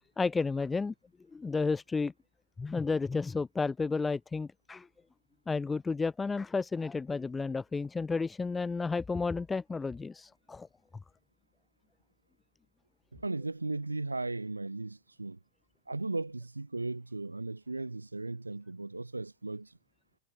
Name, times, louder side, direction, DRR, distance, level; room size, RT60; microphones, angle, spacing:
voice 1, 0.2-0.9 1.3-2.1 2.6-4.9 5.5-10.7, left 4 dB, 10° left, 2.2 m, -32 dB
voice 2, 13.1-15.4 15.9-19.7, right 2 dB, 80° right, 2.9 m, -36 dB
figure-of-eight pair, 90°, 0 cm